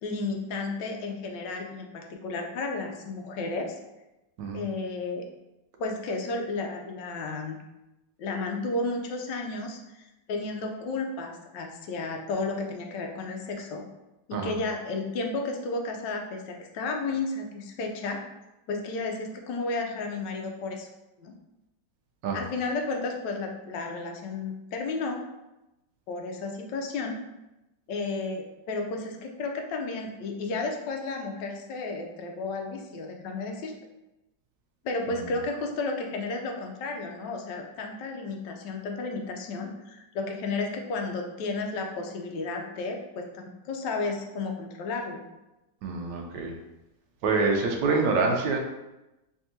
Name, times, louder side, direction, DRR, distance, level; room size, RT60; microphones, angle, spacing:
voice 1, 0.0-3.8 4.5-5.3 5.8-7.6 8.2-10.0 10.3-13.8 14.3-18.2 18.7-20.9 21.2-21.3 22.3-25.2 26.1-27.2 27.9-33.7 34.8-45.2, left 3 dB, 75° left, 3 dB, 1.2 m, -32 dB
voice 2, 45.8-46.5 47.2-48.6, right 4 dB, 75° right, 1 dB, 1.3 m, -26 dB
3.5 x 3.5 x 2.7 m, 0.95 s
omnidirectional pair, 2.1 m